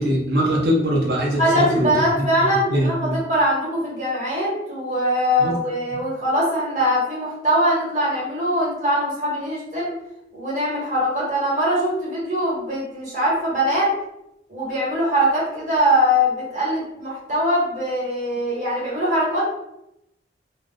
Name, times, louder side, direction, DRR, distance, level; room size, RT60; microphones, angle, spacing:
voice 1, 0.0-1.9 2.2-2.3 2.7-3.2 5.4-5.5, equal, 65° right, -2 dB, 0.8 m, -21 dB
voice 2, 1.4-10.0 10.3-13.9 14.5-19.6, equal, 45° right, -6 dB, 1.1 m, -22 dB
2.3 x 2.0 x 3.6 m, 0.83 s
head